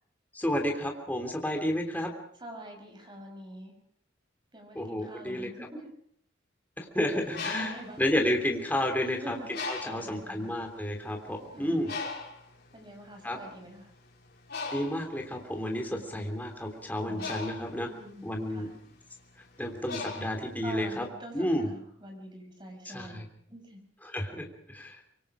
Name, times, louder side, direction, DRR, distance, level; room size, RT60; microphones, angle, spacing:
voice 1, 0.3-2.1 4.7-5.5 6.8-11.9 13.2-13.4 14.7-17.9 18.2-18.7 19.6-21.0 21.3-21.7 22.9-23.2 24.0-25.0, left 1 dB, 10° left, 2 dB, 3.3 m, -31 dB
voice 2, 2.4-3.7 4.5-5.9 7.6-8.3 9.0-9.5 9.9-10.5 11.5-11.9 12.7-13.9 15.9-16.3 17.0-17.3 17.9-18.7 20.6-23.8, right 1 dB, 25° right, 3 dB, 5.9 m, -45 dB
Bird, 7.1-9.0 9.5-10.2 10.9-11.0 11.3-21.0, left 4 dB, 55° left, 6.0 m, -39 dB
25.5 x 23.5 x 5.0 m, 0.64 s
head